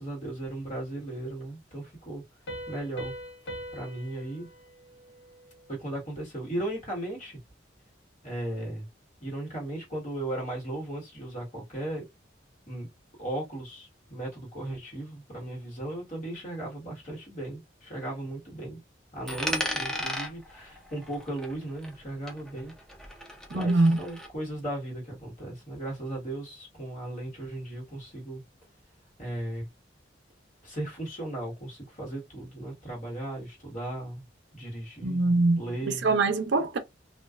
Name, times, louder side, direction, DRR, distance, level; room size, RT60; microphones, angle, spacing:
voice 1, 0.0-2.2 2.7-3.1 3.7-4.5 5.7-7.4 8.2-8.9 9.2-12.0 12.7-12.9 13.2-18.8 19.1-22.7 23.5-28.4 29.2-29.7 30.6-34.2 34.5-36.1, right 1 dB, 40° left, 1.5 m, -36 dB
Piano, 2.5-5.9, equal, 70° left, 0.7 m, -42 dB
Coin (dropping), 19.3-22.0 22.3-24.3, left 1 dB, 5° left, 0.4 m, -35 dB
voice 2, 23.5-24.0 35.0-35.6 35.9-36.8, right 2 dB, 70° right, 0.5 m, -23 dB
2.4 x 2.3 x 2.3 m
head